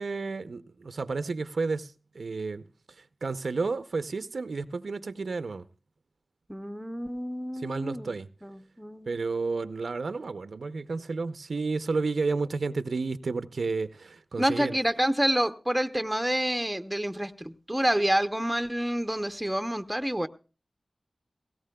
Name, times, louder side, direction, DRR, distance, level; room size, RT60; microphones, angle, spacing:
voice 1, 0.0-5.6 7.5-8.3 9.1-14.8, right 4 dB, 85° right, 0.5 m, -31 dB
voice 2, 6.5-8.1 8.4-9.2 14.4-20.3, right 1 dB, 5° right, 0.7 m, -28 dB
18.0 x 17.0 x 2.2 m
wide cardioid pair, 85°, 0 cm